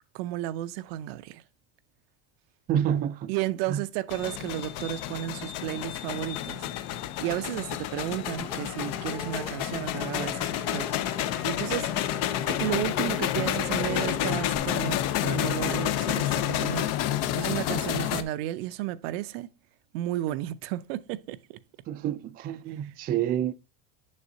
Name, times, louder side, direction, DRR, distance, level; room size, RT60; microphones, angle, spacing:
voice 1, 0.1-1.4 3.3-6.6 7.2-11.9 12.5-16.9 17.3-19.5 19.9-21.4, right 14 dB, 75° right, 0.6 m, -33 dB
voice 2, 2.7-3.3 3.7-3.9 21.9-23.5, right 10 dB, 30° right, 0.4 m, -28 dB
sound 1, 4.1-18.2, left 12 dB, 55° left, 0.7 m, -29 dB
sound 2, 8.4-14.6, left 1 dB, 5° left, 0.8 m, -43 dB
7.1 x 6.5 x 2.6 m
cardioid pair, 145°, 30 cm